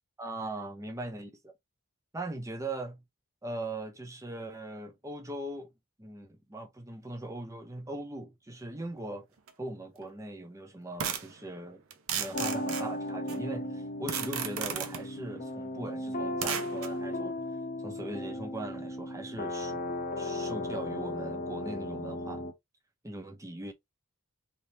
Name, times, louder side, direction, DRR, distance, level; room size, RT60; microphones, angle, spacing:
voice 1, 0.2-1.5 2.1-3.0 3.4-5.7 6.0-9.3 9.6-11.8 12.2-17.4 17.8-19.9 20.2-22.4 23.0-23.7, right 2 dB, 15° right, 0.5 m, -40 dB
sound 1, 9.5-9.6 11.0-11.3 11.9-13.4 14.1-15.1 16.4-16.9, right 8 dB, 70° right, 0.7 m, -34 dB
sound 2, 12.3-22.5, left 1 dB, 35° left, 0.7 m, -36 dB
3.5 x 2.8 x 2.8 m
head